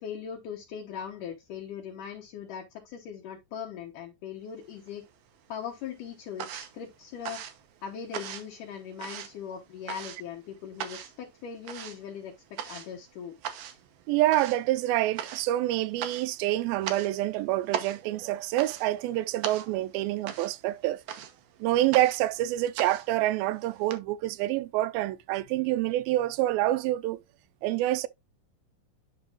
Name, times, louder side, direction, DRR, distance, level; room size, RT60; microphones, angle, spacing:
voice 1, 0.0-5.0 5.5-7.4 7.8-13.3, left 8 dB, 70° left, 2.5 m, -40 dB
sound 1, 4.6-5.4 5.7-24.0, right 10 dB, 70° right, 2.0 m, -40 dB
voice 2, 14.1-21.0 21.6-27.2 27.6-28.1, right 15 dB, 90° right, 2.4 m, -27 dB
11.0 x 4.0 x 2.4 m
omnidirectional pair, 4.1 m